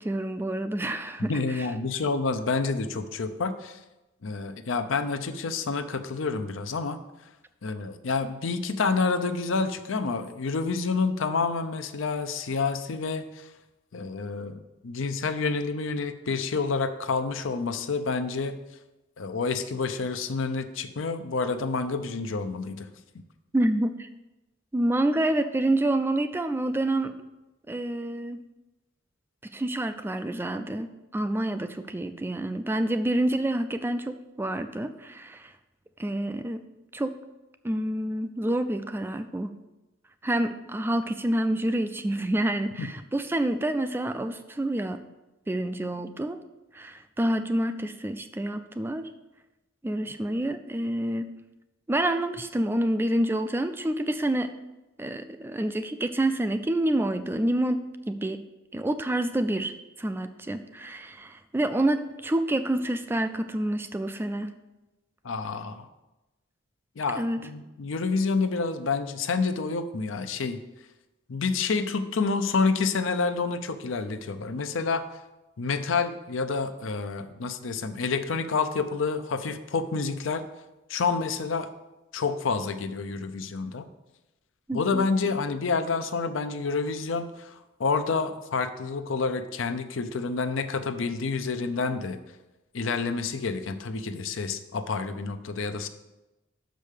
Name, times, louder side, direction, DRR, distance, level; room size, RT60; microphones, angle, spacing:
voice 1, 0.0-1.7 23.5-24.1 24.7-27.2 27.7-28.4 29.4-35.5 36.0-36.6 36.9-37.2 37.6-39.6 40.2-45.0 45.5-46.4 46.7-49.1 49.8-51.3 51.9-54.5 55.0-58.5 58.7-64.5 67.2-67.4 84.7-85.1, right 1 dB, 10° right, 9 dB, 0.3 m, -28 dB
voice 2, 1.2-3.8 4.2-7.0 7.6-13.5 13.9-18.6 19.2-22.9 42.8-42.9 65.2-65.9 67.0-70.6 71.3-75.0 75.6-80.4 80.9-81.7 82.1-83.9 84.7-92.2 92.7-95.9, left 4 dB, 75° left, 9 dB, 0.6 m, -28 dB
6.5 x 5.2 x 6.4 m, 1.0 s
head